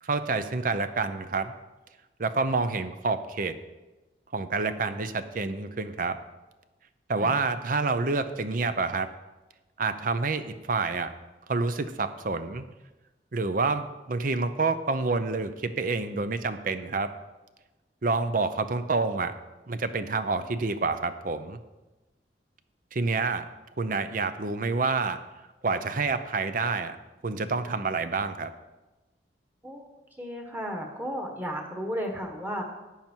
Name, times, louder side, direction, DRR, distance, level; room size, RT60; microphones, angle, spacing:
voice 1, 0.0-1.5 2.2-3.5 4.3-6.2 7.1-9.1 9.8-11.1 11.5-12.6 13.3-17.1 18.0-19.3 19.7-21.6 22.9-23.4 23.8-25.2 25.6-27.0 27.2-28.5, right 3 dB, 50° right, 11 dB, 0.6 m, -28 dB
voice 2, 30.2-32.6, equal, 10° right, 2 dB, 1.4 m, -34 dB
11.5 x 8.8 x 4.5 m, 1.1 s
head